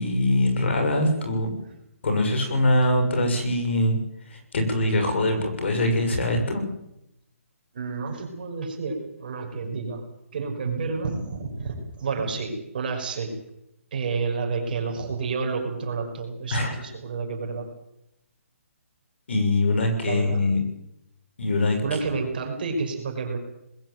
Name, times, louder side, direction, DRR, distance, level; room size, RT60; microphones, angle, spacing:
voice 1, 0.0-1.5 2.0-4.0 4.3-6.6 16.5-16.7 19.3-20.6 21.4-21.8, left 1 dB, 50° left, 6 dB, 6.6 m, -23 dB
voice 2, 7.7-10.0 10.3-13.3 13.9-17.7 20.1-20.4 21.8-23.4, right 4 dB, 40° right, 3 dB, 5.7 m, -30 dB
21.0 x 15.0 x 9.2 m, 0.79 s
hypercardioid pair, 175°, 8 cm